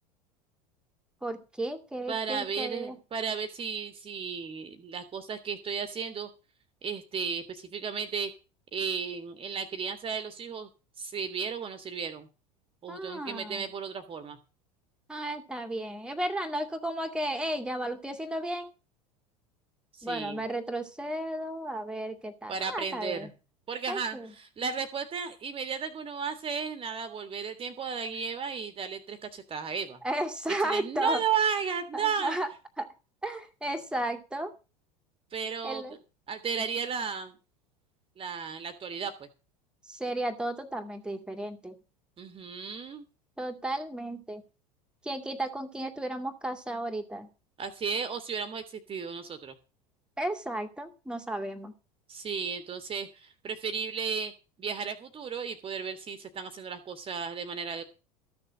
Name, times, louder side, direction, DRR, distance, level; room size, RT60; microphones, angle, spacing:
voice 1, 1.2-2.9 12.9-13.7 15.1-18.7 20.0-23.3 23.9-24.3 30.0-31.2 31.9-32.5 32.8-32.9 33.2-34.5 35.6-36.0 39.9-41.8 43.4-44.4 45.0-47.3 50.2-51.7, right 1 dB, 5° right, 8 dB, 2.2 m, -34 dB
voice 2, 2.1-6.3 6.8-8.3 8.7-10.7 11.0-12.3 12.8-14.4 19.9-20.4 22.5-23.3 23.7-30.0 30.6-32.4 35.3-35.8 36.3-37.4 38.2-39.3 42.2-43.0 47.6-49.6 52.1-54.3 54.6-57.8, right 6 dB, 25° right, 9 dB, 1.7 m, -34 dB
14.0 x 7.0 x 7.4 m, 0.32 s
figure-of-eight pair, 75°, 20 cm